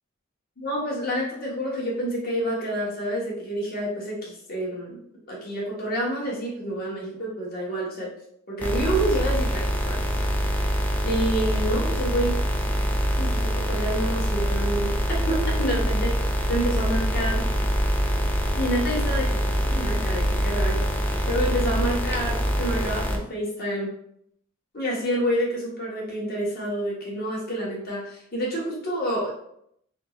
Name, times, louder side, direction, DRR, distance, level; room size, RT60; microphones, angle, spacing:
voice 1, 0.6-5.0 5.3-8.1 8.5-10.0 10.6-12.4 13.2-15.0 15.2-17.5 18.5-19.4 19.7-23.9 24.7-29.3, right 1 dB, 50° left, -4 dB, 1.2 m, -28 dB
sound 1, 8.6-23.2, equal, 10° left, 0.4 m, -24 dB
3.5 x 2.4 x 3.0 m, 0.72 s
head